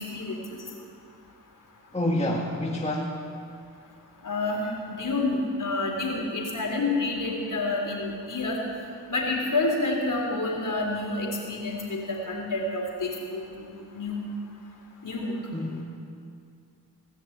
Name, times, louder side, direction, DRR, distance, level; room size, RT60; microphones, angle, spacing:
voice 1, 1.9-3.3 15.5-15.8, left 1 dB, 15° left, -1 dB, 1.8 m, -28 dB
voice 2, 4.2-8.6 9.1-13.1 13.6-14.2 15.0-15.3, left 2 dB, 45° left, -1 dB, 4.0 m, -28 dB
18.0 x 6.6 x 8.9 m, 2.4 s
supercardioid pair, 45°, 43 cm